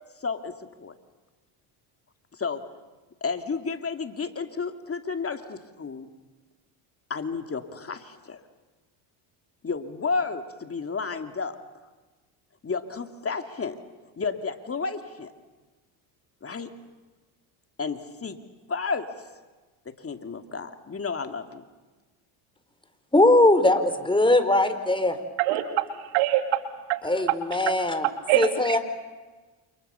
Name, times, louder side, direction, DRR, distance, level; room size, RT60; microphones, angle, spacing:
voice 1, 0.2-0.9 2.3-2.6 3.2-6.1 7.1-8.4 9.6-11.6 12.6-13.8 14.2-15.3 16.4-16.7 17.8-18.4 18.7-19.3 19.9-21.6, left 4 dB, 25° left, 7 dB, 2.6 m, -32 dB
voice 2, 23.1-25.2 27.0-28.1 28.4-28.8, left 2 dB, 10° left, 9 dB, 4.0 m, -20 dB
voice 3, 25.4-25.8 26.1-26.6 26.9-27.0 28.3-28.5, right 15 dB, 80° right, 7 dB, 3.0 m, -23 dB
29.0 x 28.0 x 7.0 m, 1.3 s
supercardioid pair, 85°, 49 cm